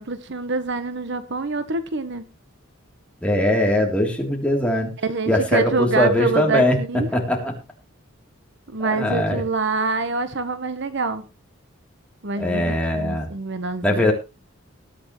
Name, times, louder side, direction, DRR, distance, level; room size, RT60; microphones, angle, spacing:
voice 1, 0.0-2.3 5.0-7.1 8.7-11.2 12.2-14.1, right 4 dB, 55° right, 1.0 m, -26 dB
voice 2, 3.2-4.9 5.3-6.8 7.1-7.5 8.8-9.4 12.4-13.3 13.8-14.1, left 1 dB, 5° left, 3.2 m, -21 dB
20.5 x 8.8 x 3.1 m
head